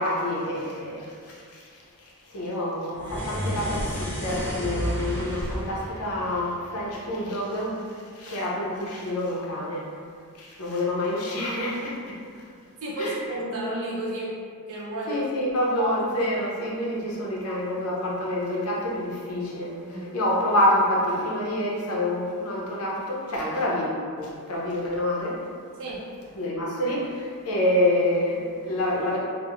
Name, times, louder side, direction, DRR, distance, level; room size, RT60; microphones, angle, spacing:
voice 1, 0.0-1.7 2.0-9.8 10.3-12.2 13.0-13.2 15.1-23.9 24.2-25.4 26.3-29.2, left 1 dB, 75° left, -4 dB, 0.6 m, -27 dB
sound 1, 2.9-7.4, equal, 10° left, 0.3 m, -32 dB
voice 2, 12.8-14.4 14.7-15.3 15.8-16.0 19.9-20.1 25.8-26.0, equal, 65° right, -3 dB, 0.5 m, -31 dB
2.8 x 2.0 x 2.4 m, 2.2 s
head